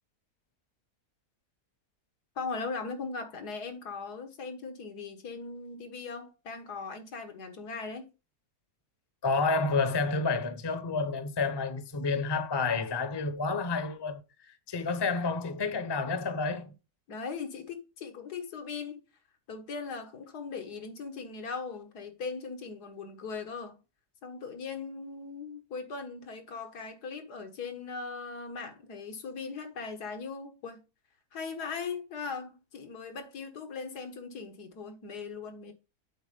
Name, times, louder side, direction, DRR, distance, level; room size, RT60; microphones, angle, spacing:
voice 1, 2.4-8.1 17.1-19.0 19.5-23.8 24.2-30.8 31.3-35.7, left 4 dB, 85° left, 2.0 m, -39 dB
voice 2, 9.2-16.7, left 4 dB, 25° left, 0.6 m, -30 dB
8.1 x 4.3 x 5.3 m
omnidirectional pair, 1.6 m